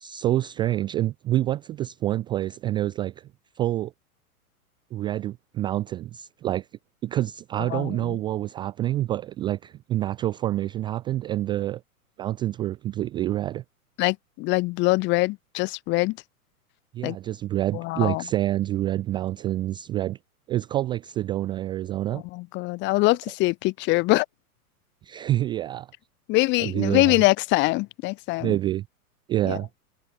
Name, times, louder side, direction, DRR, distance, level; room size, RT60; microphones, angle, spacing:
voice 1, 0.0-3.3 3.6-3.9 4.9-6.7 7.0-11.8 12.2-13.6 16.9-20.2 20.5-22.2 25.0-25.9 26.6-27.2 28.4-28.8 29.3-29.7, right 13 dB, 10° right, 0.4 m, -27 dB
voice 2, 7.7-8.2 14.0-16.2 17.0-17.2 17.7-18.2 22.1-24.3 26.3-28.6 29.4-29.6, left 22 dB, 25° left, 0.7 m, -23 dB
figure-of-eight pair, 105°, 45 cm